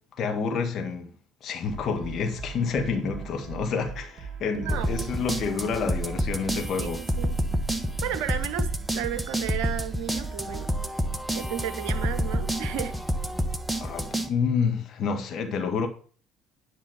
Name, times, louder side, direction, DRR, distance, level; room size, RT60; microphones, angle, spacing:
voice 1, 0.2-1.1 1.4-7.0 13.8-15.9, left 5 dB, 45° left, 1.6 m, -28 dB
sound 1, 1.7-10.7, right 6 dB, 35° right, 2.3 m, -41 dB
voice 2, 4.5-5.1 6.7-7.4 8.0-10.7 11.3-13.0, right 10 dB, 60° right, 0.9 m, -33 dB
sound 2, 4.7-14.3, right 1 dB, 5° right, 1.1 m, -29 dB
10.5 x 5.5 x 5.9 m
figure-of-eight pair, 55°, 0 cm